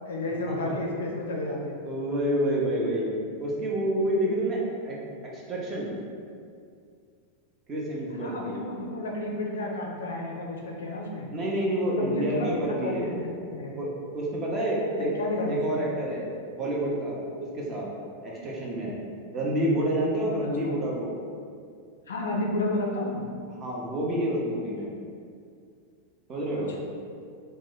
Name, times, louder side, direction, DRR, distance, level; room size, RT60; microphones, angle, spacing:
voice 1, 0.1-1.8 8.2-11.3 11.9-13.7 15.2-15.6 20.6-20.8 22.1-23.2, left 2 dB, 65° left, 0 dB, 0.4 m, -31 dB
voice 2, 1.8-3.1 3.4-5.0 5.3-5.9 7.7-8.6 11.3-13.3 13.7-15.1 15.5-16.3 16.5-17.9 18.2-19.0 19.3-21.1 23.5-24.9 26.3-26.7, right 1 dB, 25° right, -4 dB, 0.7 m, -28 dB
2.9 x 2.1 x 3.7 m, 2.3 s
figure-of-eight pair, 90°, 0 cm